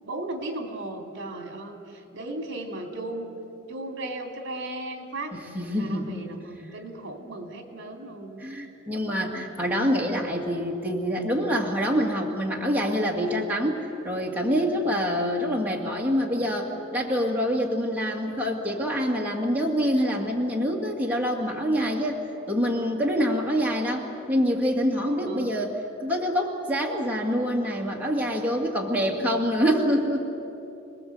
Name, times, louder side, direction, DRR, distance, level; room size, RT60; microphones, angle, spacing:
voice 1, 0.0-3.4 3.7-8.5 25.3-25.5, right 2 dB, 60° right, 4 dB, 2.8 m, -36 dB
voice 2, 5.3-6.2 8.4-22.2 22.5-25.7 26.0-30.3, equal, 10° right, -2 dB, 2.2 m, -26 dB
28.0 x 20.0 x 7.9 m, 2.9 s
head